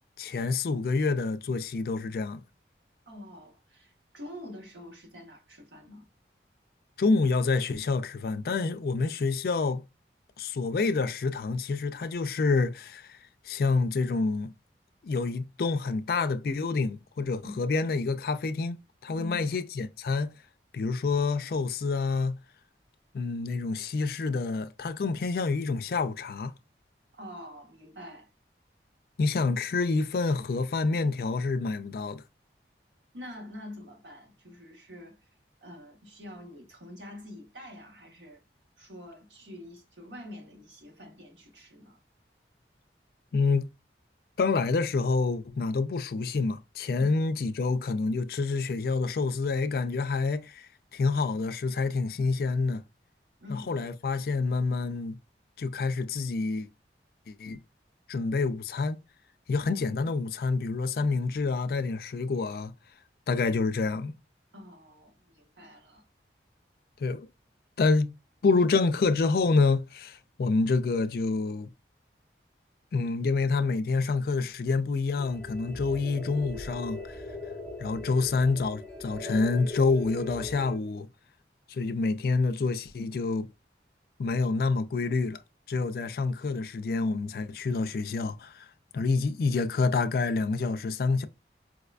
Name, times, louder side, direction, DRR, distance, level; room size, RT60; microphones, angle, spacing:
voice 1, 0.2-2.4 7.0-9.8 10.4-13.2 13.4-14.5 15.0-18.8 19.0-20.3 20.7-22.4 23.1-26.5 29.2-32.2 43.3-43.7 44.4-52.8 53.5-55.2 55.6-56.7 57.3-57.6 58.1-59.0 59.5-62.7 63.3-64.1 67.0-67.3 67.8-68.1 68.4-71.7 72.9-77.2 77.8-81.1 81.7-83.5 84.2-85.4 85.7-88.7 88.9-91.3, left 4 dB, 55° left, 0.3 m, -27 dB
voice 2, 3.1-6.1 17.4-17.7 19.1-19.5 27.1-28.3 33.1-35.2 35.6-38.4 38.8-42.0 47.0-47.1 53.4-53.8 64.5-66.1, left 1 dB, 90° right, 1.2 m, -46 dB
sound 1, 75.2-80.8, left 3 dB, 5° left, 0.6 m, -39 dB
4.7 x 2.2 x 2.4 m
head